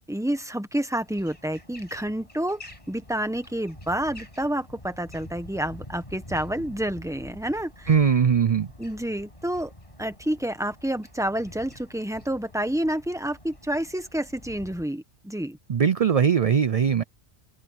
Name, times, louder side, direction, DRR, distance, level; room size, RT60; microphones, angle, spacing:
voice 1, 0.0-2.6 2.9-7.9 8.8-9.7 10.0-15.6, right 1 dB, 5° right, 1.4 m, -29 dB
sound 1, 0.9-14.9, left 1 dB, 25° left, 7.3 m, -47 dB
voice 2, 7.9-8.7 15.7-17.0, right 7 dB, 45° right, 0.5 m, -20 dB
open air
omnidirectional pair, 1.2 m